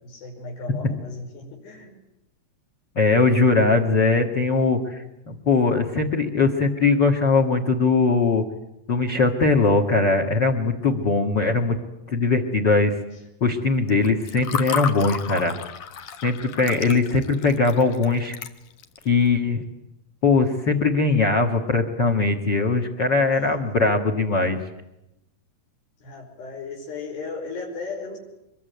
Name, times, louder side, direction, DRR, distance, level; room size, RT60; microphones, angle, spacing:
voice 1, 0.0-2.0 16.6-16.8 23.3-23.7 26.0-28.2, left 3 dB, 85° left, 0 dB, 7.5 m, -36 dB
voice 2, 2.9-8.4 8.9-11.8 12.1-12.9 13.4-15.6 16.2-18.3 19.0-19.6 20.2-24.6, left 3 dB, 40° left, 8 dB, 1.7 m, -20 dB
Water / Fill (with liquid), 13.9-19.0, left 7 dB, 60° left, 2.4 m, -32 dB
24.5 x 22.0 x 9.4 m, 0.89 s
omnidirectional pair, 4.7 m